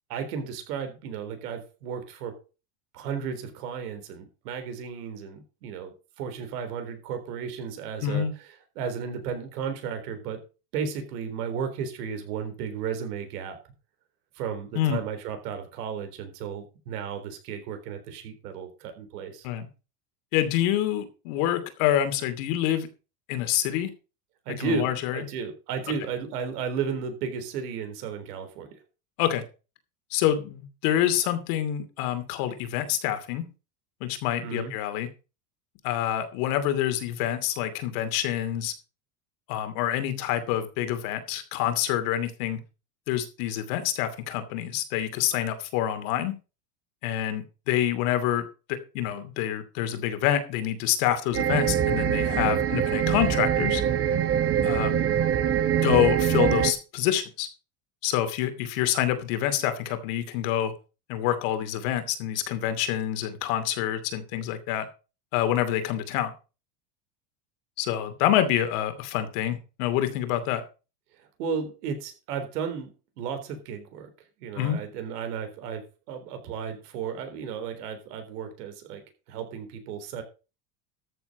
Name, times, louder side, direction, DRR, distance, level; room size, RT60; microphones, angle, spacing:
voice 1, 0.1-2.4 2.9-10.4 10.7-13.6 14.4-19.5 24.5-28.7 34.4-34.7 71.2-74.1 74.4-79.0 79.3-80.2, right 6 dB, 80° right, 7 dB, 3.9 m, -34 dB
voice 2, 8.0-8.3 14.7-15.0 19.4-19.7 20.3-22.9 23.3-23.9 24.5-25.2 29.2-29.4 30.1-33.5 34.0-35.1 35.8-38.7 39.5-42.6 43.1-46.3 47.0-53.8 54.6-55.1 55.8-57.5 58.0-60.7 61.1-64.9 65.3-66.3 67.8-70.6 74.6-74.8, left 11 dB, 65° left, 10 dB, 2.7 m, -27 dB
sound 1, 51.3-56.7, right 9 dB, 30° right, 1.3 m, -24 dB
13.5 x 7.0 x 5.0 m, 0.32 s
supercardioid pair, 130°, 46 cm